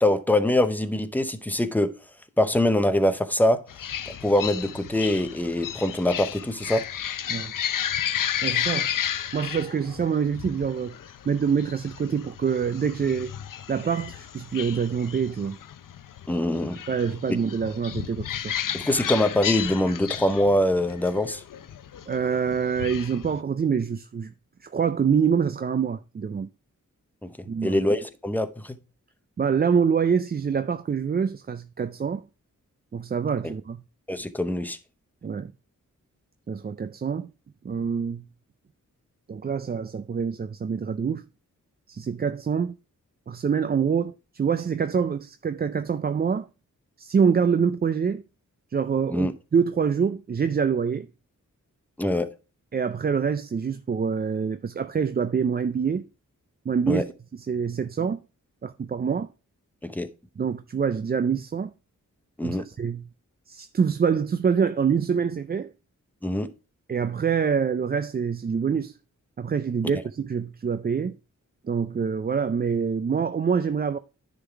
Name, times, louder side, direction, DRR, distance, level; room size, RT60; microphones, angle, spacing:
voice 1, 0.0-1.9 2.4-3.6 4.1-6.9 16.3-16.8 18.7-21.4 27.2-27.3 27.6-28.8 34.1-34.8 49.1-49.3 52.0-52.3 56.9-57.0 59.8-60.1 62.4-62.6 66.2-66.5, left 1 dB, 5° left, 0.7 m, -23 dB
sound 1, 3.7-23.4, left 9 dB, 80° left, 0.6 m, -33 dB
voice 2, 8.4-8.9 9.3-11.0 11.3-13.3 13.7-15.6 16.9-18.5 22.1-24.3 24.6-26.5 27.5-27.8 29.4-32.3 32.9-33.8 35.2-35.5 36.5-37.3 37.6-38.3 39.3-41.2 41.9-42.7 43.3-46.5 47.0-48.2 48.7-51.1 52.7-56.1 56.7-57.0 57.3-58.2 58.6-59.3 60.4-61.7 62.4-63.1 63.5-65.7 66.9-69.0 69.4-71.2 71.6-74.0, right 6 dB, 30° right, 0.4 m, -25 dB
10.0 x 3.9 x 4.5 m
wide cardioid pair, 90°, 32 cm